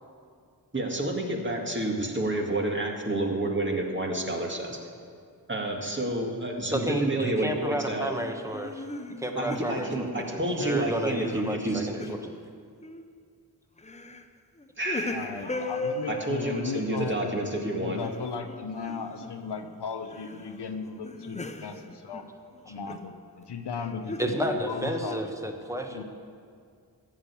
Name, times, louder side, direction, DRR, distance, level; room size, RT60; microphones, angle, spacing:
voice 1, 0.7-4.8 5.5-8.2 9.4-11.9 14.8-15.3 16.1-18.0, right 1 dB, 30° right, 1 dB, 2.0 m, -29 dB
voice 2, 6.7-8.8 9.2-12.3 24.2-26.0, equal, 10° right, 3 dB, 1.4 m, -32 dB
sound 1, 7.9-10.9 11.2-12.4 12.8-13.2 13.8-14.2 14.6-19.7 20.1-20.5 20.9-23.1 23.8-25.3, left 2 dB, 15° left, 0.7 m, -38 dB
voice 3, 15.1-22.3 22.6-24.4 24.7-25.2 25.9-26.0, left 5 dB, 80° left, 6 dB, 1.0 m, -36 dB
14.5 x 6.6 x 8.4 m, 2.2 s
wide cardioid pair, 65°, 40 cm